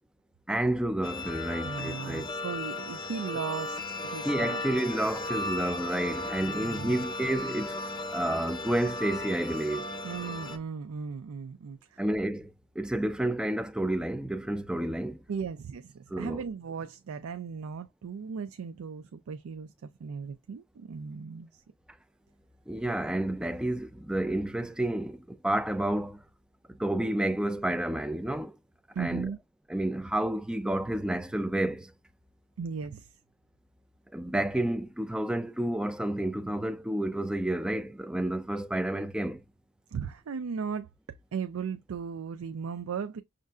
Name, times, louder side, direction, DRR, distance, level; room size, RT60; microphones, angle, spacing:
voice 1, 0.5-2.3 4.2-7.8 8.1-9.9 12.0-15.2 16.1-16.4 22.7-26.2 26.7-28.6 29.0-29.3 29.7-31.9 34.1-39.4, right 1 dB, 5° right, 0.3 m, -30 dB
sound 1, 1.0-10.6, left 2 dB, 20° left, 0.7 m, -36 dB
voice 2, 1.6-4.6 6.4-7.1 10.0-12.0 15.3-21.6 28.9-29.4 32.6-33.1 39.9-40.9 41.3-43.2, right 6 dB, 80° right, 0.4 m, -37 dB
6.3 x 2.5 x 2.3 m
head